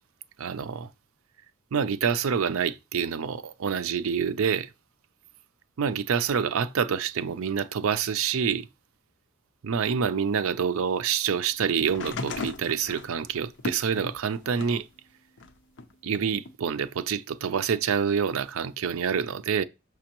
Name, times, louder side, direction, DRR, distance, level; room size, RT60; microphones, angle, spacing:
voice 1, 0.4-0.9 1.7-4.7 5.8-8.7 9.6-14.9 16.0-19.6, right 7 dB, 75° right, 0.4 m, -27 dB
sound 1, 11.8-14.9 15.4-16.5 17.5-17.6, left 3 dB, 60° left, 0.6 m, -37 dB
6.2 x 5.2 x 2.9 m
head